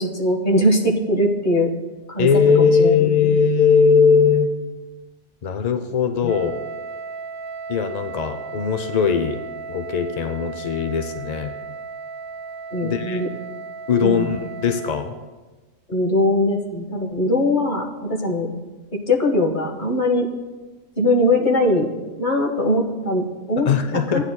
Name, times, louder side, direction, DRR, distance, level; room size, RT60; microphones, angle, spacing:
voice 1, 0.0-1.7 2.1-3.1 6.2-6.3 12.7-13.3 14.0-14.4 15.9-18.5 19.1-20.3 21.0-21.9 22.2-24.2, left 1 dB, 40° left, 1 dB, 1.2 m, -21 dB
voice 2, 2.2-4.5 5.4-6.6 7.7-9.4 9.7-11.5 12.8-13.2 13.9-15.1 23.6-24.2, left 6 dB, 60° left, 7 dB, 0.4 m, -19 dB
Wind instrument woodwind instrument, 6.3-15.1, right 4 dB, 70° right, 1.1 m, -35 dB
15.5 x 9.6 x 2.2 m, 1.2 s
omnidirectional pair, 1.3 m